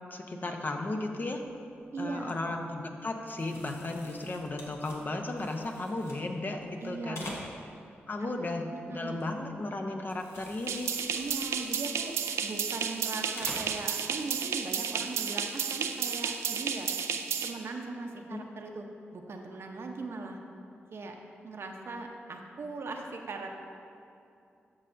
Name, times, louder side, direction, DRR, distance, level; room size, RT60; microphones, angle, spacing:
voice 1, 0.1-1.4 2.0-7.3 8.1-10.9 18.1-18.4, left 2 dB, 45° left, 4 dB, 0.7 m, -35 dB
medium format camera, 1.3-1.6 2.0-2.3 3.2-6.2 6.6-7.9 8.2-9.6 10.0-13.0 13.3-13.8 14.2-14.3 15.9-16.1, left 1 dB, 80° left, 1.1 m, -47 dB
voice 2, 1.9-2.4 6.8-7.5 8.2-9.2 11.1-12.2 12.4-16.9 17.4-18.9 19.1-20.4 20.9-21.2 21.4-23.5, right 3 dB, 65° right, 3 dB, 0.7 m, -39 dB
sound 1, 10.7-17.5, right 7 dB, 90° right, 0.4 m, -32 dB
12.0 x 5.5 x 2.6 m, 2.6 s
cardioid pair, 60°, 5 cm